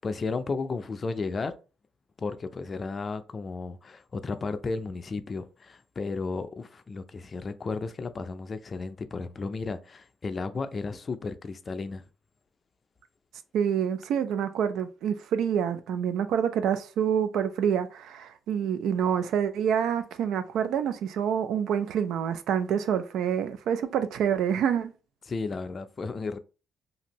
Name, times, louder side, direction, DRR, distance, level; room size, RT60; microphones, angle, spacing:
voice 1, 0.0-1.5 2.2-12.1 25.3-26.4, left 4 dB, 40° left, 0.4 m, -33 dB
voice 2, 13.5-24.9, right 8 dB, 80° right, 0.3 m, -27 dB
2.7 x 2.5 x 2.9 m
cardioid pair, 90°, 0 cm